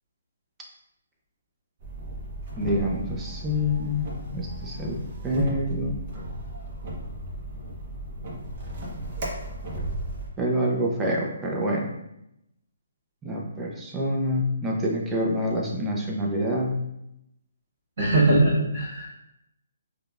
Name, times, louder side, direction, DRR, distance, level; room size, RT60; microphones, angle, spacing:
sound 1, 1.8-10.3, right 1 dB, 40° right, 0.9 m, -35 dB
voice 1, 2.6-4.1 4.3-5.0 5.2-6.0 10.4-11.9 13.2-16.8, equal, 10° right, -1 dB, 0.5 m, -26 dB
voice 2, 18.0-19.1, right 2 dB, 60° right, -8 dB, 1.5 m, -21 dB
4.9 x 2.3 x 2.4 m, 0.85 s
hypercardioid pair, 160°, 0 cm